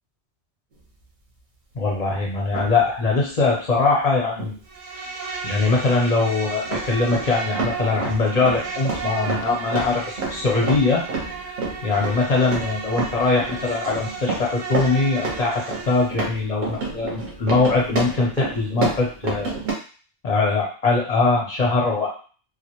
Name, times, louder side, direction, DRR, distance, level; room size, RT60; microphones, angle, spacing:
voice 1, 1.7-4.5 5.4-11.0 11.8-19.5 20.2-22.1, left 3 dB, 45° left, -3 dB, 0.5 m, -22 dB
sound 1, 2.5-2.8 4.4-4.5 5.5-5.6 6.6-19.7, right 3 dB, 50° right, 0.7 m, -30 dB
Insect, 4.7-16.1, right 4 dB, 90° right, 0.9 m, -34 dB
2.2 x 2.0 x 2.8 m, 0.39 s
omnidirectional pair, 1.2 m